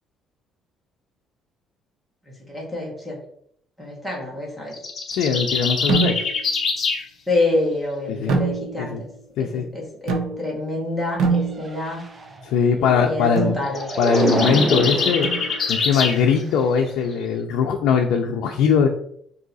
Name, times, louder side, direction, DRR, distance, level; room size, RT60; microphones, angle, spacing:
voice 1, 2.5-3.2 3.8-4.7 7.3-8.9 9.4-12.0 12.8-13.9, left 2 dB, 5° right, -4 dB, 1.2 m, -27 dB
sound 1, 4.7-7.0 13.7-16.2, left 5 dB, 35° left, 0.7 m, -25 dB
voice 2, 5.1-6.2 8.1-8.4 8.8-9.0 9.4-9.6 12.4-13.6 14.0-15.3 15.7-18.9, left 6 dB, 90° left, 2 dB, 0.4 m, -20 dB
sound 2, 5.9-6.5 8.3-9.0 10.1-10.7 11.2-12.0 13.4-13.7 15.2-15.8, right 4 dB, 75° right, 0.8 m, -25 dB
sound 3, 11.5-12.5 13.1-16.2 16.7-17.0, right 2 dB, 20° right, 0.4 m, -27 dB
3.7 x 2.7 x 4.0 m, 0.67 s
cardioid pair, 170°, 0 cm